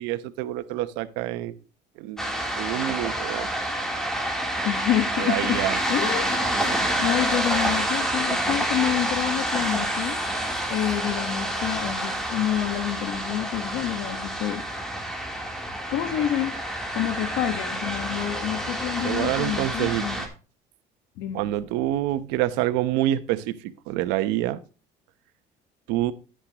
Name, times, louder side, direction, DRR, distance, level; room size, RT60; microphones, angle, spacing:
voice 1, 0.0-1.5 2.0-3.5 5.2-5.8 6.5-6.9 19.0-20.2 21.3-24.6 25.9-26.1, right 14 dB, 90° right, 1.0 m, -27 dB
sound 1, 2.2-20.3, right 1 dB, 5° left, 3.3 m, -28 dB
voice 2, 4.6-5.6 5.9-10.2 10.7-14.6 15.9-20.2 21.2-21.4, left 12 dB, 80° left, 1.4 m, -28 dB
11.5 x 9.9 x 3.0 m
cardioid pair, 100°, 18 cm